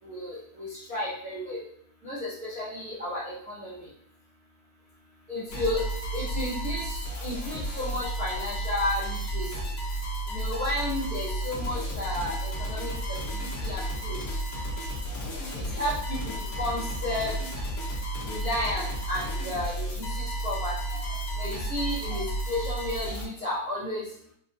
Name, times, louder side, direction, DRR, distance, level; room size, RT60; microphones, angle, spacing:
voice 1, 0.0-1.6 2.0-3.9 5.3-5.8 6.1-9.7 10.3-14.4 15.5-17.4 18.2-24.1, left 1 dB, 80° right, -11 dB, 0.5 m, -33 dB
sound 1, 5.5-23.2, right 1 dB, 85° left, 0.7 m, -32 dB
4.5 x 2.7 x 2.2 m, 0.66 s
omnidirectional pair, 3.4 m